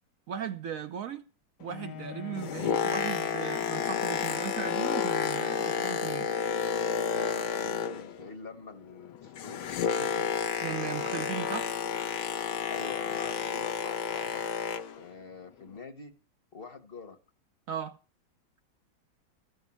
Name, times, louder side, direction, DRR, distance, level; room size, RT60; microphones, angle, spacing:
voice 1, 0.3-1.2 1.6-6.3 10.6-11.8 17.7-18.0, right 8 dB, 70° right, 0.8 m, -37 dB
Bowed string instrument, 1.7-4.6, left 5 dB, 60° left, 1.1 m, -45 dB
Boat Water vehicle, 2.2-8.3 8.6-15.0 15.7-15.8, left 8 dB, 80° left, 1.7 m, -31 dB
voice 2, 7.1-10.3 12.7-14.4 14.9-16.2 16.5-17.2, left 5 dB, 35° left, 1.0 m, -45 dB
14.0 x 5.3 x 8.4 m
omnidirectional pair, 2.2 m